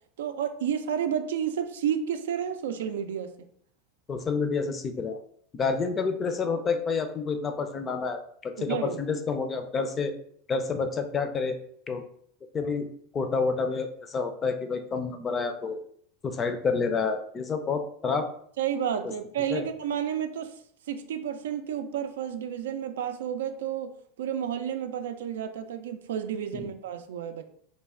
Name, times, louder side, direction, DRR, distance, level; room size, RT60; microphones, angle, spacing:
voice 1, 0.2-3.3 8.6-9.0 18.6-20.5 20.9-27.5, right 9 dB, 90° right, 8 dB, 0.4 m, -31 dB
voice 2, 4.1-5.2 5.5-10.1 10.5-11.6 11.9-12.0 12.5-12.9 13.1-15.8 16.2-18.3 19.5-19.6 26.5-26.7, left 4 dB, 25° left, 7 dB, 0.4 m, -29 dB
3.2 x 2.2 x 3.6 m, 0.64 s
supercardioid pair, 125°, 0 cm